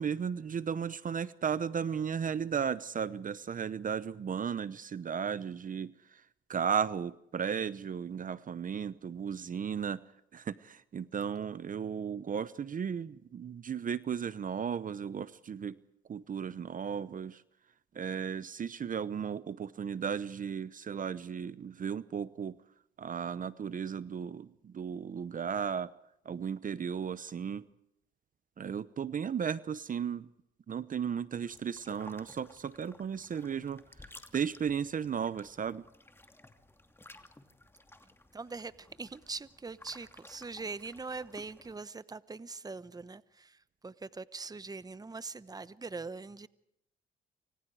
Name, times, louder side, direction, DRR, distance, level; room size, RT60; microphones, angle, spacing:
voice 1, 0.0-6.2 6.5-10.0 10.3-15.8 16.1-17.4 17.9-22.6 23.0-25.9 26.2-27.6 28.6-30.3 30.7-35.8, right 7 dB, 45° right, 0.9 m, -35 dB
sound 1, 31.5-41.8, left 2 dB, 10° left, 2.6 m, -56 dB
voice 2, 38.3-46.5, right 4 dB, 20° right, 1.0 m, -42 dB
29.0 x 26.5 x 4.9 m
cardioid pair, 90°, 20 cm